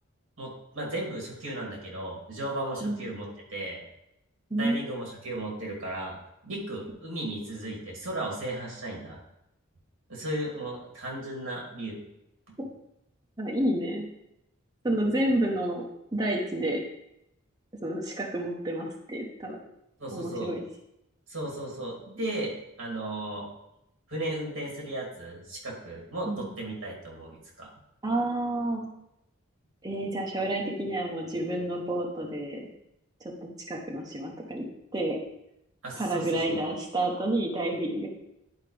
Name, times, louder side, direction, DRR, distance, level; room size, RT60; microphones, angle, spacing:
voice 1, 0.4-3.8 4.6-6.2 6.4-9.2 10.1-12.0 20.0-20.5 21.3-23.5 24.1-27.7 35.8-36.4, right 1 dB, 65° right, -2 dB, 2.8 m, -35 dB
voice 2, 4.5-4.8 13.4-14.1 14.8-15.8 16.1-16.8 17.8-19.6 20.1-20.6 26.2-26.5 28.0-28.9 29.8-32.6 33.4-34.7 34.9-35.2 36.0-38.1, right 1 dB, 20° right, -1 dB, 0.9 m, -29 dB
10.5 x 4.8 x 3.4 m, 0.84 s
head